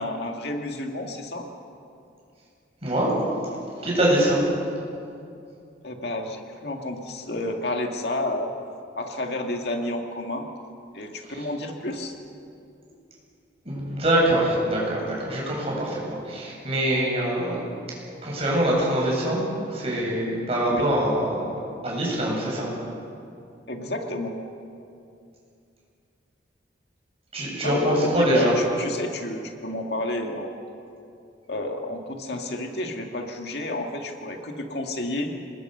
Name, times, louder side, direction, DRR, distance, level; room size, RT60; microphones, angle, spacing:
voice 1, 0.0-1.5 5.8-8.5 9.0-10.5 10.9-12.2 20.6-20.9 23.7-24.4 27.6-30.6 31.5-35.3, left 1 dB, 60° left, 2 dB, 2.1 m, -30 dB
voice 2, 3.8-4.4 13.6-16.0 16.3-17.6 18.2-19.4 19.7-21.5 21.8-22.7 27.3-28.5, right 1 dB, 35° right, -4 dB, 8.0 m, -23 dB
27.0 x 21.5 x 6.8 m, 2.5 s
head